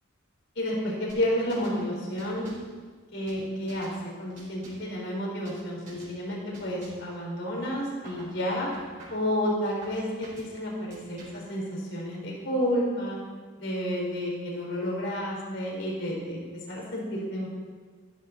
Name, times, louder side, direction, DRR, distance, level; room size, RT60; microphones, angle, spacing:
voice 1, 0.6-2.5 3.1-3.9 4.2-8.7 9.1-13.2 13.6-17.5, equal, 60° left, -3 dB, 4.4 m, -30 dB
sound 1, 1.1-1.8 2.2-2.7 3.3-4.0 4.3-4.9 5.4-5.6 5.9-6.2 6.5-7.1 7.6-8.3 8.7-9.3 9.8-10.5 10.9-11.5, right 2 dB, 35° right, 4.6 m, -49 dB
14.5 x 14.0 x 4.2 m, 1.5 s
head